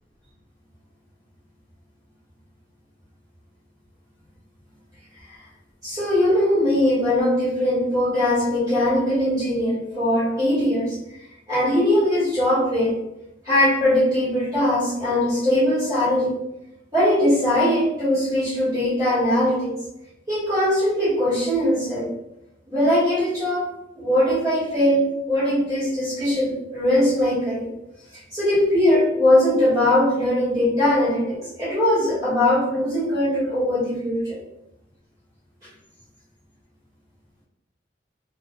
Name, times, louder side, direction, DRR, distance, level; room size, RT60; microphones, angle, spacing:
voice 1, 5.8-11.0 11.5-13.0 13.4-16.3 16.9-19.7 20.3-22.1 22.7-27.7 28.1-34.4, left 1 dB, 20° right, -11 dB, 1.2 m, -21 dB
3.4 x 2.4 x 2.3 m, 0.88 s
head